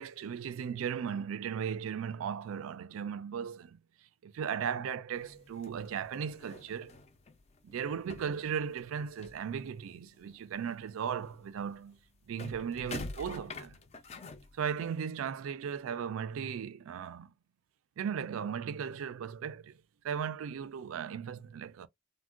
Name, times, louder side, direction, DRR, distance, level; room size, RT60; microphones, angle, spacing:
voice 1, 0.0-3.8 4.2-6.9 7.6-12.0 12.3-13.8 14.6-17.3 18.0-19.8 20.0-21.9, right 7 dB, 75° right, 0.3 m, -37 dB
sound 1, 5.1-10.0 10.3-15.0, left 3 dB, 30° left, 0.4 m, -47 dB
3.4 x 2.1 x 2.4 m
head